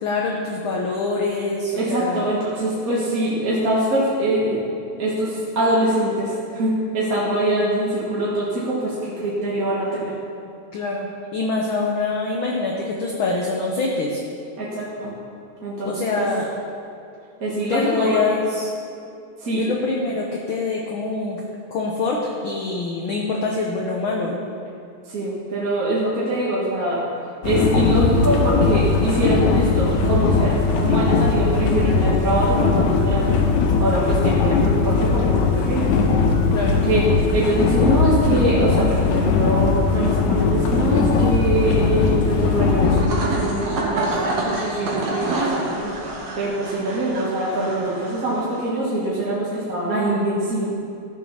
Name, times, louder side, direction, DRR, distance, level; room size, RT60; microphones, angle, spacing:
voice 1, 0.0-2.3 10.7-14.2 15.8-16.5 17.7-18.7 19.6-21.4 21.7-24.4 36.5-36.8, left 3 dB, 65° left, -1 dB, 1.3 m, -25 dB
voice 2, 1.8-4.6 5.0-10.1 14.6-15.1 15.6-15.9 16.2-16.3 17.4-18.4 19.4-19.7 25.1-27.1 27.4-33.4 33.8-35.9 36.8-37.1 37.3-45.9 46.4-50.7, right 1 dB, 35° right, -7 dB, 1.7 m, -23 dB
sound 1, 27.4-43.0, left 4 dB, 90° left, 2.3 m, -19 dB
sound 2, 42.8-48.7, right 2 dB, 60° right, 2.6 m, -27 dB
13.0 x 7.3 x 5.7 m, 2.6 s
omnidirectional pair, 3.3 m